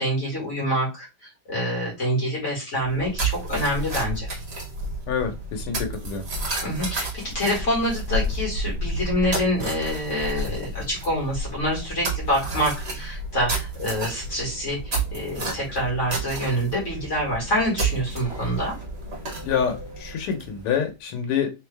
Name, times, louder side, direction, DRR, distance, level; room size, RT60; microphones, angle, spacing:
voice 1, 0.0-4.3 6.6-18.8, equal, 35° left, 2.3 m, -26 dB
sound 1, 2.8-20.7, right 2 dB, 30° right, 1.6 m, -31 dB
voice 2, 5.1-6.3 19.4-21.5, left 7 dB, 85° left, 1.9 m, -27 dB
4.0 x 3.1 x 3.4 m
omnidirectional pair, 2.4 m